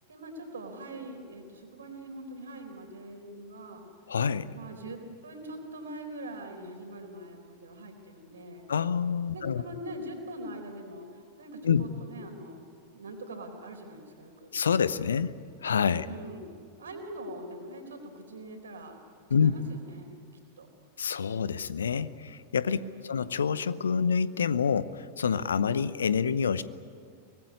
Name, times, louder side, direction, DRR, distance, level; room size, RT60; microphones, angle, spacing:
voice 1, 0.1-3.8 4.5-8.7 9.3-12.6 12.9-14.5 16.0-16.5 16.8-19.0 19.4-20.2 20.6-20.7 22.8-23.2, right 1 dB, 70° right, 4 dB, 4.2 m, -43 dB
voice 2, 4.1-4.5 8.7-9.6 11.6-11.8 14.5-15.4 15.6-16.1 19.3-19.5 21.0-26.6, left 6 dB, 70° left, 16 dB, 0.8 m, -27 dB
24.0 x 20.0 x 9.6 m, 2.3 s
figure-of-eight pair, 90°, 0 cm